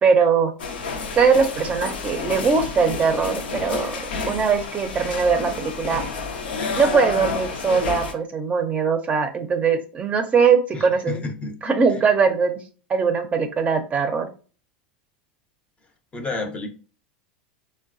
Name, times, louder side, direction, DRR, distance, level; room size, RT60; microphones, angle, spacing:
voice 1, 0.0-0.5 1.2-4.0 4.3-6.0 6.8-11.2 11.6-12.6 12.9-14.3, right 5 dB, 25° right, 6 dB, 0.5 m, -21 dB
sound 1, 0.6-8.1, left 4 dB, 80° left, 0.6 m, -30 dB
voice 2, 10.7-11.6 11.9-12.0 16.1-16.7, left 3 dB, 20° left, 6 dB, 0.6 m, -30 dB
3.8 x 2.1 x 2.5 m, 0.37 s
hypercardioid pair, 100°, 5 cm